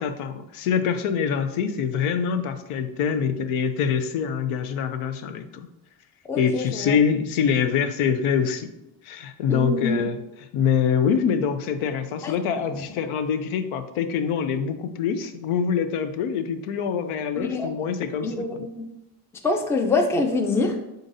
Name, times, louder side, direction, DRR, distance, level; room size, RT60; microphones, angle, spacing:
voice 1, 0.0-5.4 6.4-8.7 9.0-18.6, left 7 dB, 80° left, 9 dB, 0.6 m, -25 dB
voice 2, 6.3-6.9 9.5-9.9 12.2-12.3 17.4-17.7 18.2-18.5 18.8-18.9 19.4-20.7, left 3 dB, 5° left, 5 dB, 0.3 m, -24 dB
3.8 x 3.8 x 2.6 m, 0.88 s
cardioid pair, 85°, 50 cm